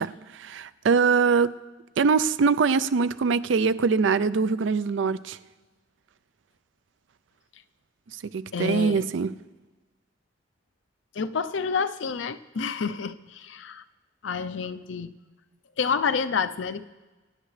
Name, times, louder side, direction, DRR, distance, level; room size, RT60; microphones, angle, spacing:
voice 1, 0.0-1.5 2.0-5.4 8.3-9.3, right 5 dB, 80° right, 15 dB, 0.4 m, -23 dB
voice 2, 8.5-9.0 11.1-13.8 14.2-15.1 15.8-16.9, left 5 dB, 85° left, 12 dB, 0.5 m, -29 dB
23.5 x 10.0 x 3.3 m, 1.2 s
head